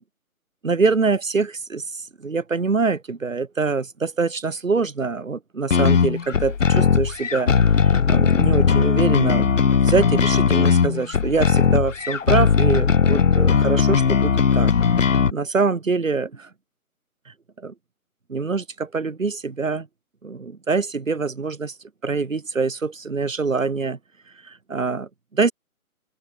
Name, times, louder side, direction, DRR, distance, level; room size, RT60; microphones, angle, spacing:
voice 1, 0.6-7.5 7.7-14.7 15.0-16.5 17.3-17.4 17.6-17.7 18.3-19.9 20.2-21.7 22.0-24.0 24.4-25.5, right 4 dB, 60° right, 3.3 m, -24 dB
sound 1, 5.7-15.3, left 6 dB, 60° left, 0.8 m, -18 dB
open air
figure-of-eight pair, 145°, 44 cm